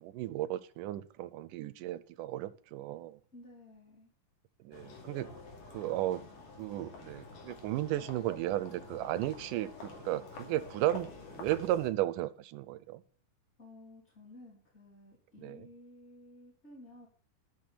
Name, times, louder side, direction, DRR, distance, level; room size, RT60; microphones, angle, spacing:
voice 1, 0.0-3.2 4.6-5.3 5.7-6.2 6.6-13.0 15.4-15.7, right 14 dB, 80° right, 15 dB, 2.1 m, -34 dB
voice 2, 3.3-4.1 13.6-17.1, left 1 dB, 20° left, -4 dB, 3.5 m, -54 dB
sound 1, 4.7-11.9, left 4 dB, 70° left, 4.0 m, -48 dB
12.5 x 6.3 x 7.5 m, 0.44 s
omnidirectional pair, 4.0 m